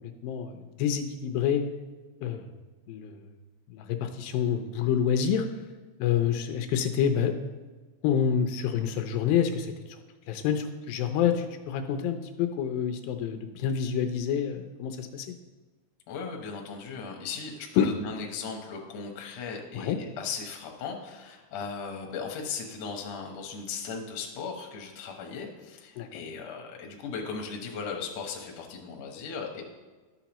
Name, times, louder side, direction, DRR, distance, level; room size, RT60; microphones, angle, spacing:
voice 1, 0.2-1.6 2.2-2.5 2.9-3.2 3.7-5.5 6.0-7.3 8.0-9.7 10.3-15.3 17.8-17.9 19.7-20.0 26.0-26.1, left 8 dB, 90° left, 7 dB, 2.5 m, -27 dB
voice 2, 16.1-29.6, left 5 dB, 65° left, 2 dB, 1.9 m, -37 dB
12.0 x 7.0 x 3.0 m, 1.3 s
omnidirectional pair, 4.1 m